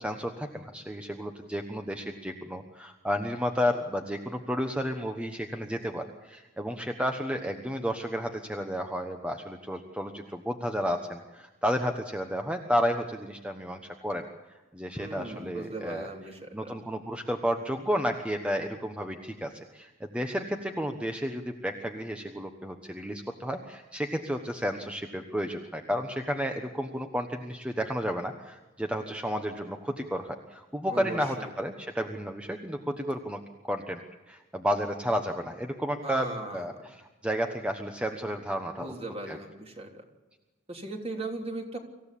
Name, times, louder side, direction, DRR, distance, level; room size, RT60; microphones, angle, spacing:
voice 1, 0.0-14.3 14.7-16.1 16.5-38.9 39.3-39.4, equal, 5° right, 5 dB, 1.1 m, -32 dB
voice 2, 14.9-16.7 30.9-31.5 36.0-36.7 38.8-40.0 40.7-41.8, right 2 dB, 30° right, 2 dB, 3.4 m, -38 dB
26.0 x 15.5 x 8.5 m, 1.1 s
head